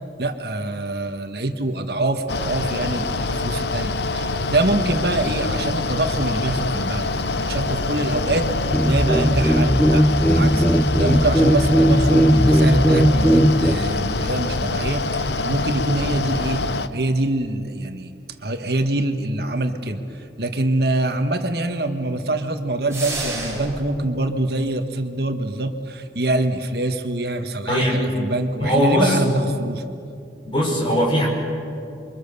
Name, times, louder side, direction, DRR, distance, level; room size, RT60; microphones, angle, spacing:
voice 1, 0.2-16.6 16.9-18.1 18.4-29.8, right 2 dB, 55° right, 6 dB, 1.6 m, -25 dB
Mechanical fan, 2.3-16.9, left 3 dB, 65° left, 0.8 m, -25 dB
sound 1, 8.7-13.7, equal, 10° left, 0.7 m, -17 dB
sound 2, 22.9-23.9, right 2 dB, 15° right, 5.2 m, -29 dB
voice 2, 27.7-28.0 28.6-29.2 30.4-31.3, equal, 25° left, -1 dB, 5.8 m, -19 dB
29.0 x 24.0 x 7.0 m, 2.6 s
head